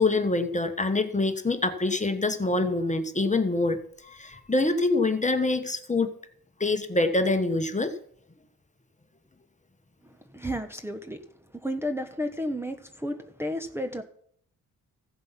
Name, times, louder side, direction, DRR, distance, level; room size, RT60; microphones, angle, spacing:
voice 1, 0.0-6.1 6.6-8.0, left 2 dB, 20° left, 8 dB, 1.3 m, -25 dB
voice 2, 10.0-11.2 11.5-14.0, equal, 5° right, 4 dB, 1.1 m, -32 dB
15.5 x 7.5 x 5.8 m, 0.64 s
cardioid pair, 85°, 36 cm